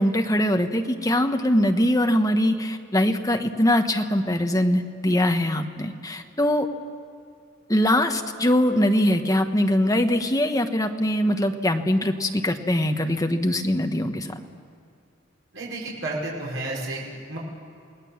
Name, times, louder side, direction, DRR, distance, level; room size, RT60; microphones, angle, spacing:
voice 1, 0.0-6.7 7.7-14.3, left 1 dB, 20° left, 5 dB, 1.2 m, -22 dB
voice 2, 15.5-17.4, right 2 dB, 75° right, -4 dB, 5.6 m, -31 dB
28.5 x 19.0 x 7.3 m, 2.5 s
head